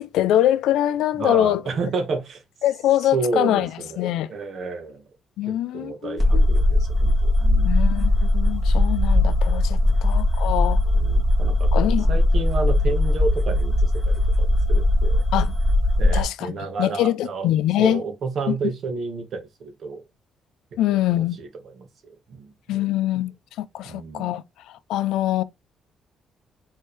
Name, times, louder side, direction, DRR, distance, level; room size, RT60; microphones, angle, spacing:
voice 1, 0.0-1.6 2.6-3.7 4.0-4.3 5.4-6.5 7.7-10.8 11.7-12.1 15.3-15.5 16.1-16.5 16.8-18.0 18.5-18.6 20.8-21.4 22.7-25.4, left 13 dB, 90° left, 0.4 m, -23 dB
voice 2, 1.2-2.4 3.1-5.1 5.5-7.9 9.8-9.9 10.9-11.7 12.1-15.2 16.0-17.5 17.8-20.0 21.1-21.5 21.8-22.9 23.8-24.3, right 4 dB, 60° right, 1.6 m, -31 dB
sound 1, 6.2-16.2, left 1 dB, 20° right, 2.4 m, -19 dB
4.5 x 3.6 x 3.2 m
cardioid pair, 90°, 0 cm